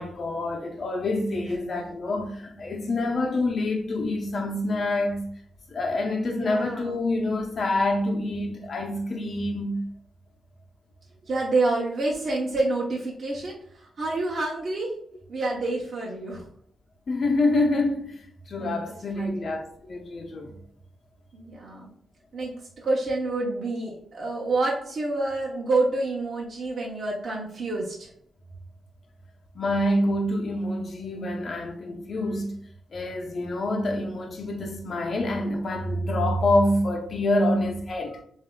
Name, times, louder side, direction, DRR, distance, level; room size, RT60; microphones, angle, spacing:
voice 1, 0.0-5.3 5.7-9.8 17.1-20.5 29.5-32.5 32.9-38.2, left 1 dB, 50° left, 0.9 m, -26 dB
voice 2, 6.2-7.0 11.3-13.5 14.0-14.9 15.3-16.4 18.5-19.4 21.3-21.9 22.3-22.5 22.8-28.1, right 2 dB, 50° right, 1.0 m, -28 dB
7.2 x 2.7 x 2.3 m
wide cardioid pair, 115°, 0 cm